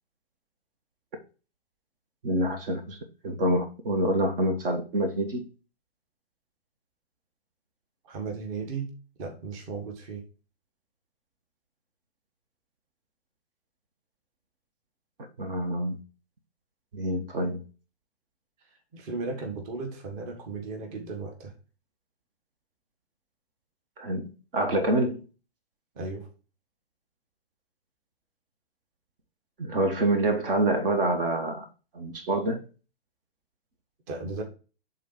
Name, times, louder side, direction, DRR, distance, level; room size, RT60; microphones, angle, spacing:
voice 1, 2.2-3.0 3.2-5.5 15.4-16.0 16.9-17.6 24.0-25.2 29.6-31.7 31.9-32.6, right 1 dB, 60° right, 1.4 m, -26 dB
voice 2, 8.0-8.9 9.2-10.3 18.9-21.5 25.9-26.3 34.1-34.4, right 4 dB, 35° right, 1.4 m, -35 dB
7.4 x 3.9 x 4.4 m
figure-of-eight pair, 120°, 32 cm